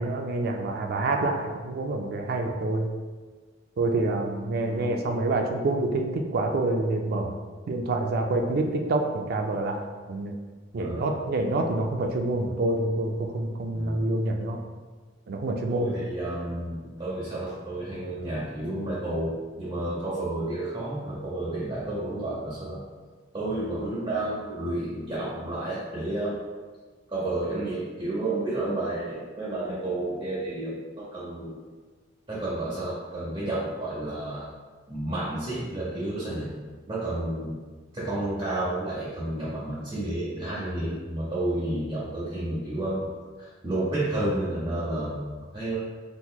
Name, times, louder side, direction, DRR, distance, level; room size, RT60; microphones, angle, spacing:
voice 1, 0.0-2.9 3.8-7.3 7.7-10.3 10.7-14.6 15.3-15.9, right 2 dB, 50° right, 3 dB, 0.3 m, -27 dB
voice 2, 4.6-5.4 10.8-11.2 13.7-14.1 15.7-22.8 23.3-26.4 27.1-31.5 32.3-34.5 34.9-36.5 36.9-37.6 37.9-43.1 43.4-45.2 45.5-45.8, right 1 dB, 25° right, -10 dB, 0.7 m, -31 dB
3.8 x 2.9 x 2.2 m, 1.4 s
head